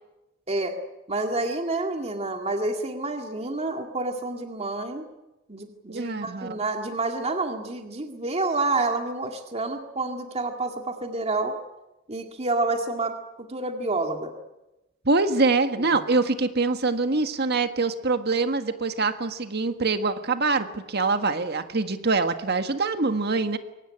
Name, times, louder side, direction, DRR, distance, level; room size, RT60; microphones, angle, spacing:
voice 1, 1.1-5.1 5.5-11.5 12.1-13.1 13.5-14.3 15.8-16.0, right 2 dB, 35° right, 4 dB, 2.1 m, -28 dB
voice 2, 5.9-6.6 15.0-23.6, right 3 dB, 55° right, 8 dB, 1.7 m, -24 dB
23.5 x 18.5 x 10.0 m, 1.0 s
head